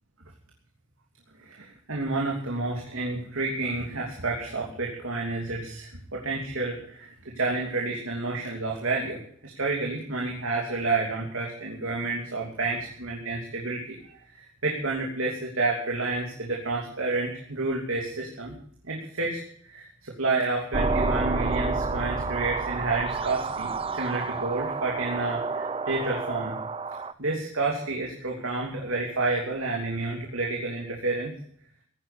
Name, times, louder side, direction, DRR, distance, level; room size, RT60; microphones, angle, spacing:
voice 1, 1.4-18.6 18.8-19.4 19.6-26.6 27.2-31.3, right 3 dB, 85° right, -2 dB, 2.9 m, -30 dB
sound 1, 20.7-27.1, right 4 dB, 25° right, 0.6 m, -29 dB
17.5 x 9.9 x 6.9 m, 0.63 s
head